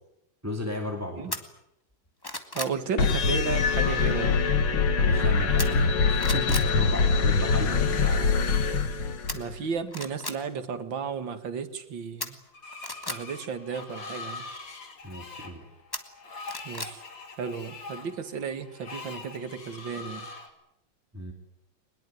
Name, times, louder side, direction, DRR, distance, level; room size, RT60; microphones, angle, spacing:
voice 1, 0.4-1.4 5.0-8.3 15.0-15.7 21.1-21.3, left 1 dB, 10° right, 3 dB, 2.5 m, -35 dB
sound 1, 1.3-1.4 1.9-2.8 5.6-5.9 6.2-6.7 9.3-9.4 9.9-10.4 12.2-13.2 15.9-16.9 17.3-17.4, left 1 dB, 10° left, 1.8 m, -34 dB
voice 2, 2.5-4.4 9.3-12.4 13.1-14.5 16.6-17.0 17.4-20.3, right 6 dB, 75° right, 10 dB, 2.5 m, -33 dB
sound 2, 3.0-9.6, left 4 dB, 90° left, 2.4 m, -24 dB
Screech, 12.5-20.5, left 3 dB, 70° left, 3.5 m, -43 dB
22.5 x 21.0 x 9.4 m, 0.81 s
omnidirectional pair, 2.1 m